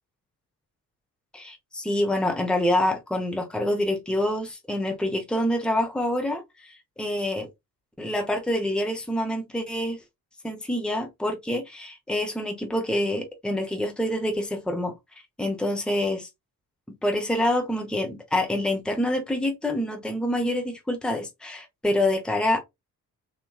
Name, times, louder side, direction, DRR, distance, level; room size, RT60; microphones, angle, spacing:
voice 1, 1.3-7.5 8.0-10.0 10.4-14.9 15.4-16.3 17.0-22.6, left 1 dB, ahead, 1.0 m, -26 dB
3.6 x 2.8 x 2.4 m
figure-of-eight pair, 40°, 46 cm